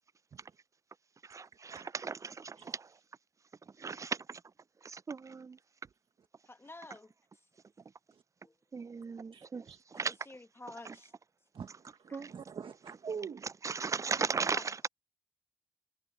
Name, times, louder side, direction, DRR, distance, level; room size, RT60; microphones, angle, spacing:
voice 1, 1.2-3.0 3.6-4.4 4.8-5.6 8.7-10.2 10.7-11.0 12.1-12.3 13.4-14.8, right 5 dB, 35° right, 0.4 m, -37 dB
voice 2, 6.5-7.1 8.4-8.5 10.0-11.1 12.1-12.2 14.5-14.6, left 2 dB, 25° left, 1.4 m, -49 dB
voice 3, 9.3-9.8 11.5-13.5, right 6 dB, 70° right, 1.2 m, -44 dB
cardioid pair, 45°, 9 cm